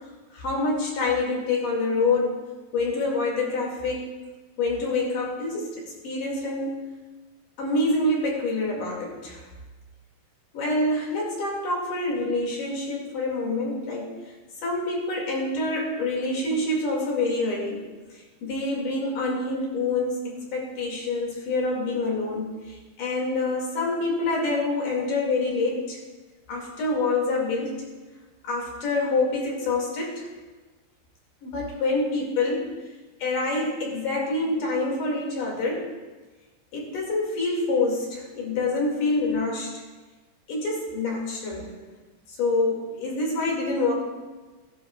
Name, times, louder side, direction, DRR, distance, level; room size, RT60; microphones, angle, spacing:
voice 1, 0.3-2.4 2.7-4.1 4.6-6.9 7.6-9.4 10.5-14.3 14.6-17.9 18.1-26.0 26.5-27.7 28.4-30.3 31.4-32.7 33.2-35.9 36.7-39.8 40.5-41.8 42.3-43.9, left 2 dB, 55° left, -2 dB, 3.8 m, -26 dB
18.0 x 11.0 x 2.4 m, 1.2 s
omnidirectional pair, 4.6 m